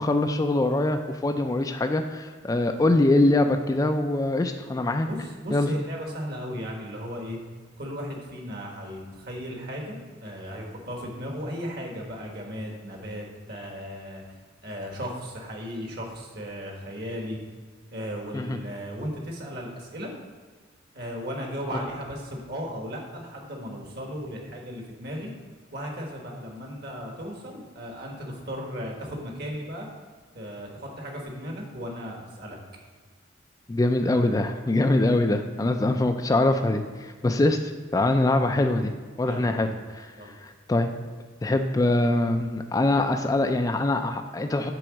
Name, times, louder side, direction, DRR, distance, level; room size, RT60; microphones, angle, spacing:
voice 1, 0.0-5.1 5.5-5.7 18.3-18.6 33.7-37.6 37.9-38.9 39.2-39.7 40.0-40.9 41.4-44.7, left 2 dB, 20° left, 6 dB, 0.3 m, -23 dB
voice 2, 5.1-7.4 7.8-14.2 14.6-17.4 17.9-20.1 20.9-25.3 25.7-29.9 30.3-32.6 39.2-39.8 40.1-40.4, equal, 55° right, 0 dB, 1.5 m, -36 dB
7.7 x 3.9 x 6.3 m, 1.5 s
head